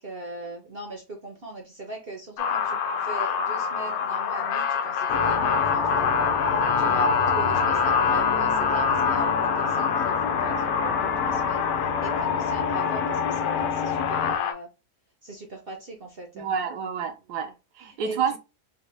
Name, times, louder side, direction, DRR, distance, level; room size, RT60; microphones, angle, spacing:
voice 1, 0.0-11.7 12.0-14.7 15.2-16.5 17.9-18.4, right 2 dB, 50° right, 0.7 m, -40 dB
sound 1, 2.4-14.5, left 7 dB, 85° left, 1.2 m, -26 dB
sound 2, 5.1-14.4, left 4 dB, 70° left, 0.9 m, -28 dB
voice 2, 16.3-18.4, right 7 dB, 80° right, 1.3 m, -29 dB
4.1 x 2.3 x 3.1 m
omnidirectional pair, 1.8 m